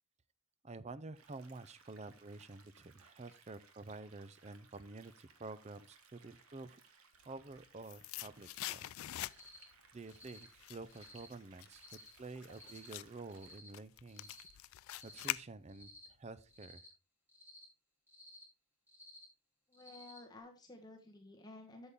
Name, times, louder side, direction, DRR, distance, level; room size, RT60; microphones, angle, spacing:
voice 1, 0.6-7.0 7.3-8.9 9.9-14.3 15.0-15.9 16.2-16.9, right 3 dB, 30° right, 0.4 m, -50 dB
sound 1, 1.1-13.6, right 5 dB, 75° right, 1.4 m, -65 dB
sound 2, 7.3-9.7 10.1-16.0 16.3-16.4, left 15 dB, 70° left, 0.3 m, -45 dB
Cricket, 9.3-9.6 10.1-10.4 10.9-11.3 11.7-12.1 12.5-12.9 13.3-13.7 14.1-14.5 14.9-15.3 15.7-16.1 16.5-16.9 17.3-17.6 18.1-18.4 18.9-19.2 19.7-20.2, left 2 dB, 10° right, 3.2 m, -57 dB
voice 2, 19.7-21.9, left 2 dB, 20° left, 1.1 m, -53 dB
8.2 x 7.1 x 3.6 m
head